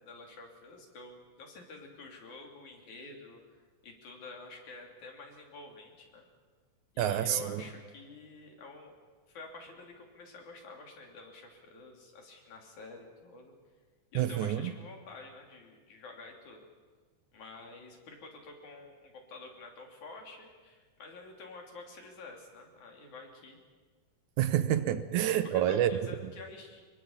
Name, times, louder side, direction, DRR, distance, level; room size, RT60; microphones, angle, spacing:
voice 1, 0.0-6.3 6.9-8.9 9.3-13.5 14.1-16.7 17.3-23.6 25.4-26.9, left 3 dB, 65° left, 2 dB, 4.4 m, -49 dB
voice 2, 7.0-7.6 14.2-14.7 24.4-26.0, right 11 dB, 75° right, 12 dB, 2.1 m, -28 dB
24.0 x 22.5 x 7.3 m, 1.5 s
omnidirectional pair, 3.7 m